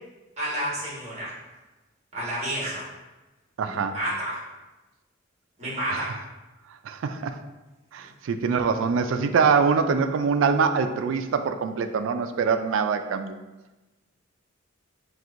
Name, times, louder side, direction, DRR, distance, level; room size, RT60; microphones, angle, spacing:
voice 1, 0.4-1.3 2.1-2.9 3.6-4.4 5.6-6.2, equal, 35° right, -6 dB, 1.4 m, -30 dB
voice 2, 3.6-4.0 5.9-6.0 6.8-7.4 7.9-13.4, right 5 dB, 70° right, 8 dB, 0.3 m, -24 dB
5.9 x 2.6 x 2.5 m, 1.1 s
head